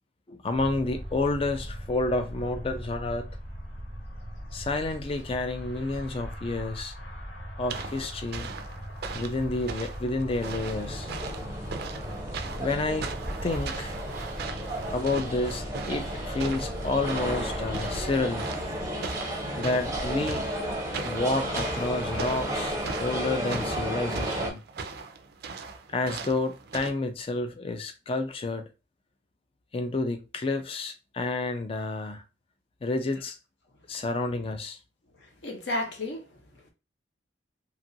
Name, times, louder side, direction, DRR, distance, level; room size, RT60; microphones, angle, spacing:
voice 1, 0.3-3.3 4.5-6.9 7.6-8.5 9.1-11.1 12.6-13.1 13.4-13.9 14.9-18.5 19.6-20.5 21.0-24.6 25.9-28.7 29.7-32.2 32.8-33.4 33.9-34.8, left 2 dB, 30° left, 0.3 m, -30 dB
sound 1, 0.5-18.1, equal, 75° left, 1.3 m, -40 dB
sound 2, 7.7-26.9, right 4 dB, 50° right, 0.4 m, -39 dB
sound 3, 10.4-24.5, right 1 dB, 15° right, 0.6 m, -33 dB
voice 2, 35.2-36.7, left 1 dB, 60° left, 0.8 m, -34 dB
2.9 x 2.4 x 2.6 m
head